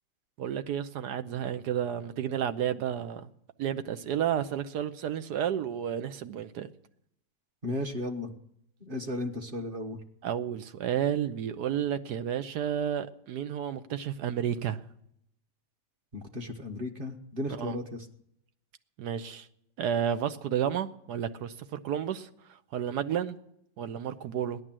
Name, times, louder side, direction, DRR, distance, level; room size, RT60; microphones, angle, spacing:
voice 1, 0.4-3.3 3.6-6.7 10.2-14.8 17.5-17.8 19.0-19.5 19.8-22.3 22.7-23.4 23.8-24.6, right 9 dB, 75° right, 1.3 m, -31 dB
voice 2, 7.6-8.3 8.8-10.0 16.1-18.1, left 1 dB, 35° right, 1.4 m, -35 dB
16.0 x 11.0 x 7.5 m
omnidirectional pair, 1.8 m